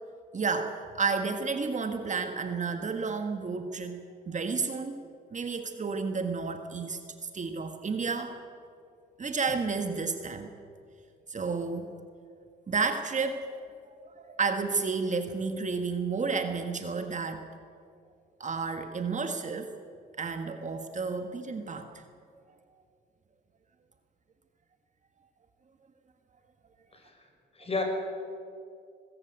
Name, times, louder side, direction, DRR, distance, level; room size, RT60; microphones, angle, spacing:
voice 1, 0.3-4.0 4.3-5.0 5.3-8.3 9.2-10.5 11.3-11.9 12.7-13.5 14.0-17.4 18.4-19.7 20.2-22.0, right 4 dB, 40° right, 7 dB, 1.6 m, -31 dB
voice 2, 26.9-27.3 27.5-27.8, left 3 dB, 30° left, 3 dB, 5.7 m, -32 dB
21.5 x 14.5 x 9.4 m, 2.3 s
cardioid pair, 90°, 20 cm